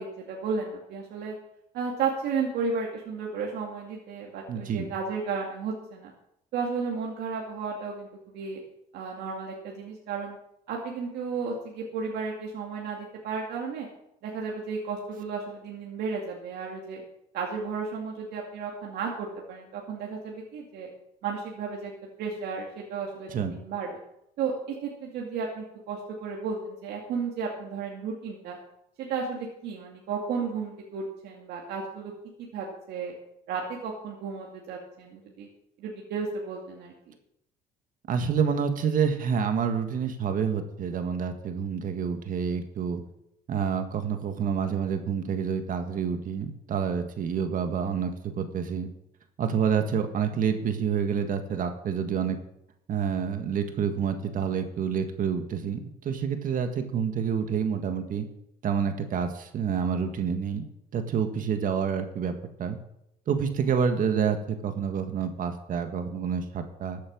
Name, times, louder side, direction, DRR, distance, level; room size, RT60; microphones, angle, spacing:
voice 1, 0.0-1.4 1.7-6.1 6.5-8.6 8.9-10.4 10.7-13.9 14.2-17.0 17.3-20.9 21.2-21.9 22.2-23.9 24.4-28.6 29.0-32.1 32.5-33.1 33.5-35.5 35.8-37.1, right 5 dB, 75° right, -1 dB, 2.4 m, -33 dB
voice 2, 4.5-4.9 23.3-23.5 38.1-43.0 43.5-48.9 49.4-52.4 52.9-58.2 58.6-60.6 60.9-62.3 62.6-62.8 63.3-67.0, right 7 dB, 55° right, 7 dB, 1.7 m, -28 dB
14.5 x 8.7 x 6.1 m, 0.78 s
cardioid pair, 110°, 17 cm